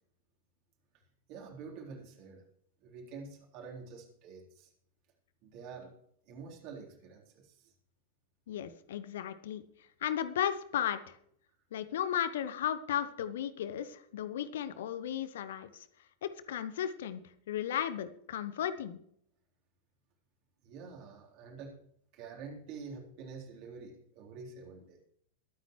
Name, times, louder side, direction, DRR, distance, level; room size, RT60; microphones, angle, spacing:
voice 1, 1.3-2.5 2.8-4.7 5.4-6.0 6.3-7.7 20.6-21.8 22.1-25.1, right 5 dB, 45° right, -1 dB, 3.9 m, -47 dB
voice 2, 8.5-9.6 10.0-11.1 11.7-15.8 16.2-17.2 17.5-19.0, left 10 dB, 60° left, 13 dB, 1.0 m, -35 dB
22.0 x 9.3 x 3.2 m, 0.67 s
figure-of-eight pair, 90°, 0 cm